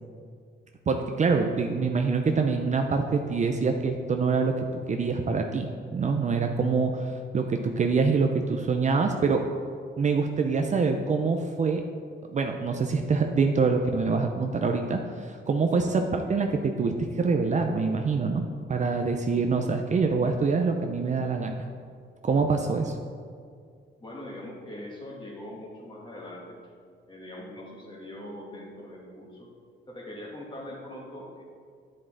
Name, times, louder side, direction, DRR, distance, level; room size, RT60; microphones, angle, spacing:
voice 1, 0.9-9.4 10.0-11.8 12.3-18.4 18.7-21.5 22.2-22.9, right 4 dB, 35° right, 4 dB, 0.6 m, -25 dB
voice 2, 24.0-26.6 27.1-29.5 29.9-31.4, left 1 dB, 25° left, -3 dB, 2.3 m, -42 dB
8.7 x 7.7 x 3.9 m, 2.1 s
cardioid pair, 90°, 20 cm